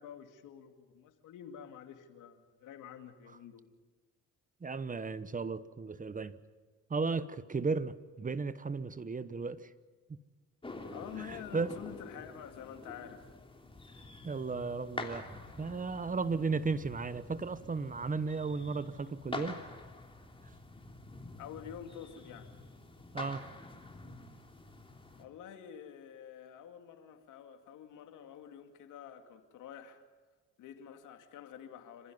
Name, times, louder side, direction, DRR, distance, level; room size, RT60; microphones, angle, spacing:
voice 1, 0.0-3.7 10.9-13.3 21.4-22.5 25.2-30.0 30.6-32.1, left 9 dB, 90° left, 2.5 m, -48 dB
voice 2, 4.6-6.4 6.9-9.7 10.1-10.2 11.2-11.7 14.2-19.6 23.1-23.4, right 4 dB, 25° right, 1.1 m, -35 dB
sound 1, 10.6-25.2, left 2 dB, 15° left, 3.3 m, -47 dB
27.0 x 15.5 x 9.4 m
cardioid pair, 90°, 30 cm